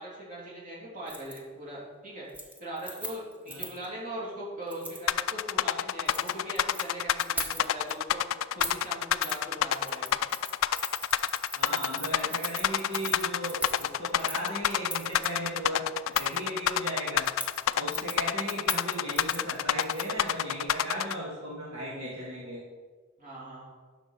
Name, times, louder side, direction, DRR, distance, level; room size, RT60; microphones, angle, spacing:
voice 1, 0.0-2.3 2.6-8.2 8.5-10.2 23.2-23.7, right 1 dB, 40° right, -6 dB, 3.1 m, -40 dB
Keys jangling, 1.1-1.4 1.7-2.0 2.3-3.9 4.7-5.0 5.9-6.8 7.2-7.9 8.6-8.9 9.2-9.4 9.7-15.3 16.1-16.4 17.2-20.3 20.6-20.7, equal, 10° right, 0.9 m, -40 dB
sound 1, 5.1-21.1, left 10 dB, 70° left, 0.3 m, -27 dB
voice 2, 11.5-17.3 17.7-22.6, right 1 dB, 75° right, -7 dB, 1.9 m, -36 dB
10.5 x 5.9 x 4.4 m, 1.4 s
head